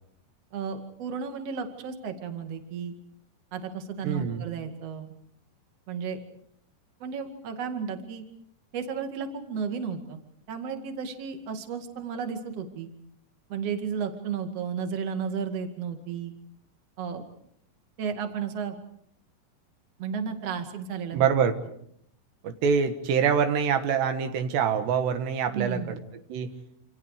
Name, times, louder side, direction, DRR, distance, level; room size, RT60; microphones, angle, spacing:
voice 1, 0.5-2.9 3.5-5.1 5.9-6.2 7.0-8.2 8.7-10.2 10.5-12.9 13.5-16.3 17.0-17.3 18.0-18.8 20.0-21.3 25.5-26.0, right 6 dB, 45° right, 6 dB, 2.7 m, -33 dB
voice 2, 4.0-4.5 21.1-21.6 22.4-26.0 26.3-26.5, right 7 dB, 80° right, 8 dB, 3.5 m, -25 dB
27.5 x 27.0 x 5.0 m, 0.68 s
omnidirectional pair, 4.9 m